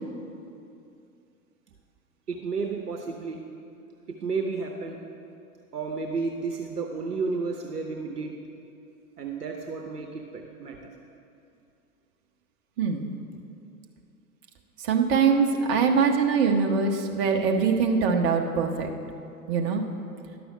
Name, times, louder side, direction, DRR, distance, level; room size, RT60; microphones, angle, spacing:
voice 1, 2.3-3.4 4.2-5.0 5.7-8.3 9.2-10.8, right 4 dB, 75° right, 2 dB, 0.9 m, -32 dB
voice 2, 14.8-18.9 19.5-19.8, right 5 dB, 40° right, 3 dB, 1.1 m, -23 dB
11.0 x 6.1 x 6.6 m, 2.6 s
figure-of-eight pair, 100°, 47 cm